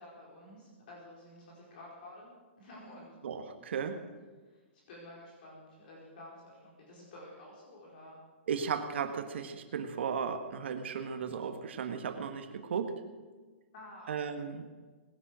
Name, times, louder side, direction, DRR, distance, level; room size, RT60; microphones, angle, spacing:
voice 1, 0.0-2.3 2.6-3.2 4.4-4.6 4.9-8.2 13.7-14.6, left 1 dB, 45° left, -3 dB, 4.9 m, -51 dB
voice 2, 3.2-4.0 8.5-12.9 14.1-14.7, right 6 dB, 60° right, 6 dB, 1.5 m, -35 dB
20.0 x 11.0 x 6.3 m, 1.4 s
hypercardioid pair, 170°, 7 cm